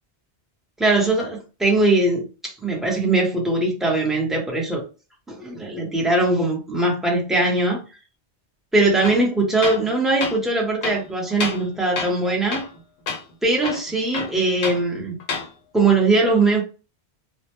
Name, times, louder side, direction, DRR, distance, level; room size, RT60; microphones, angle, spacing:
voice 1, 0.8-4.8 5.3-7.8 8.7-12.7 13.4-15.2 15.7-16.6, right 2 dB, ahead, -2 dB, 0.5 m, -21 dB
Tools, 9.0-9.2 9.6-9.9 10.2-10.4 10.8-11.7 12.0-12.2 12.5-12.8 13.1-13.2 13.6-14.8 15.2-15.5, left 5 dB, 60° left, 0.6 m, -29 dB
2.1 x 2.1 x 2.9 m, 0.32 s
omnidirectional pair, 1.1 m